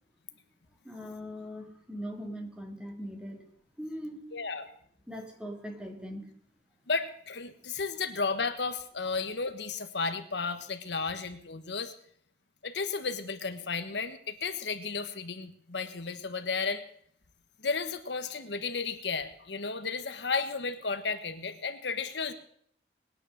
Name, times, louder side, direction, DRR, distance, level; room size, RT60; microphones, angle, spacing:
voice 1, 0.8-3.5 3.8-4.3 5.1-6.3, equal, 5° right, 3 dB, 2.5 m, -40 dB
voice 2, 4.3-4.7 6.9-11.9 12.6-16.8 17.6-22.3, left 4 dB, 75° left, 8 dB, 1.3 m, -33 dB
20.0 x 9.8 x 6.6 m, 0.64 s
head